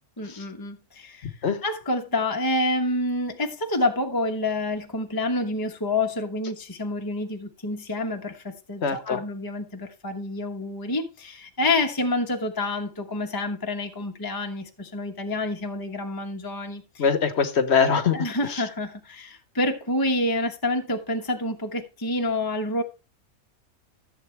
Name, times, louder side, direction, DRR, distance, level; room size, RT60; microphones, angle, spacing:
voice 1, 0.2-1.3 1.6-17.0 18.1-22.8, left 2 dB, 15° left, 1.0 m, -28 dB
voice 2, 1.2-1.6 8.8-9.2 17.0-18.2 18.5-18.6, left 6 dB, 50° left, 1.2 m, -23 dB
14.5 x 7.9 x 3.3 m
omnidirectional pair, 1.5 m